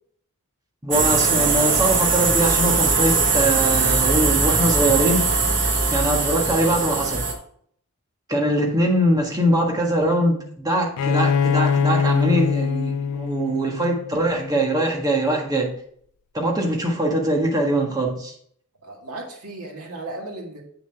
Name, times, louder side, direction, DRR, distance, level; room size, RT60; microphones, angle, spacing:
voice 1, 0.8-5.2 5.9-7.2 8.3-15.7 16.3-18.3, right 1 dB, 15° right, 1.5 m, -22 dB
sound 1, 0.9-7.3, right 4 dB, 55° right, 1.4 m, -20 dB
Bowed string instrument, 11.0-14.6, left 6 dB, 80° left, 0.4 m, -23 dB
voice 2, 18.8-20.6, right 2 dB, 85° right, 2.0 m, -35 dB
7.8 x 6.5 x 3.5 m
head